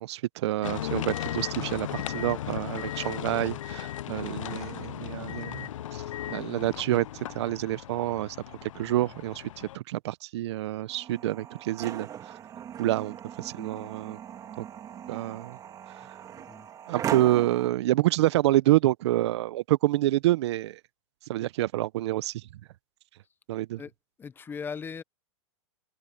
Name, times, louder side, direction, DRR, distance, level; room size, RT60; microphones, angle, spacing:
voice 1, 0.0-6.0 6.3-12.4 12.8-14.2 14.6-14.7 15.1-15.6 15.9-16.1 16.9-20.8 21.3-22.4 23.5-23.8, right 15 dB, 60° right, 0.7 m, -28 dB
sound 1, 0.6-9.8, left 12 dB, 90° left, 0.5 m, -36 dB
sound 2, 10.9-17.7, right 9 dB, 20° right, 2.3 m, -39 dB
voice 2, 16.4-16.7 23.8-23.9 24.2-25.0, left 6 dB, 15° left, 0.7 m, -38 dB
hypercardioid pair, 145°, 16 cm